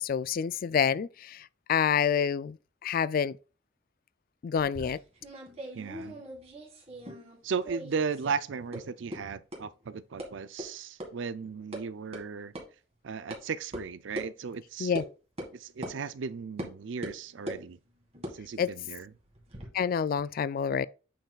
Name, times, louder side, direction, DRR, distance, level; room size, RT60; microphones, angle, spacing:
voice 1, 0.0-2.6 2.8-3.3 4.4-5.0 14.8-15.0 18.6-18.7 19.7-20.9, left 7 dB, 50° left, 0.3 m, -28 dB
sound 1, 4.6-7.4 7.6-8.4 8.7-8.8 9.1-9.2 9.5-9.6 10.2-10.3 10.6-10.7 11.0-11.1 11.4-11.8 12.1-12.2 12.6-12.7 13.3-13.4 13.7-13.8 14.2-14.3 15.0-15.1 15.4-15.5 15.8-16.0 16.6-16.7 17.0-17.6 18.1-19.7, equal, 35° right, 1.9 m, -40 dB
voice 2, 5.7-6.2 7.4-12.5 13.0-15.0 15.5-17.8 18.3-19.1, right 5 dB, 70° right, 0.4 m, -36 dB
8.7 x 5.6 x 2.3 m
head